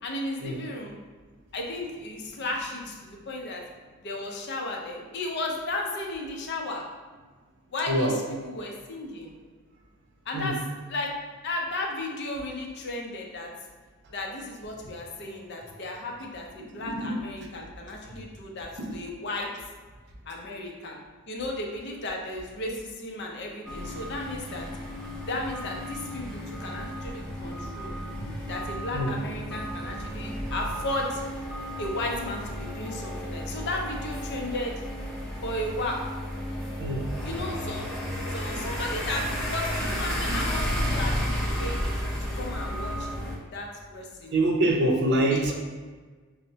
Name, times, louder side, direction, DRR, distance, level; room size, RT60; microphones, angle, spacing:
voice 1, 0.0-1.0 1.5-3.6 4.0-6.8 7.7-9.3 10.3-10.6 10.9-11.1 11.4-13.5 14.1-19.5 20.3-21.0 21.3-24.7 25.2-27.9 28.4-31.2 31.8-34.7 35.4-36.0 37.2-38.0 38.3-41.8 42.2-43.1 43.5-43.7 43.9-44.4 45.3-45.5, left 2 dB, 55° left, 0 dB, 0.6 m, -34 dB
voice 2, 7.9-8.2 10.3-10.5 16.8-17.5 18.8-18.9 28.2-28.4 28.9-29.2 36.8-37.1 38.5-38.6 40.3-40.5 40.8-40.9 44.3-45.5, right 1 dB, 55° right, 1 dB, 0.5 m, -26 dB
sound 1, 23.6-43.3, equal, 5° left, 0.6 m, -33 dB
5.5 x 2.1 x 2.7 m, 1.4 s
head